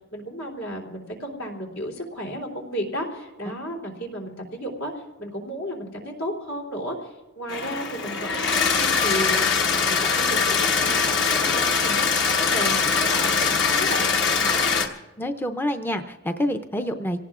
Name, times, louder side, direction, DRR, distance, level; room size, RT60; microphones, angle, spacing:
voice 1, 0.1-4.9 5.2-14.1 14.5-14.7, equal, 75° left, -1 dB, 3.2 m, -33 dB
sound 1, 7.5-14.9, left 5 dB, 55° left, 1.3 m, -22 dB
voice 2, 15.2-17.2, equal, 10° left, 7 dB, 0.5 m, -27 dB
27.0 x 17.5 x 2.4 m, 1.2 s
head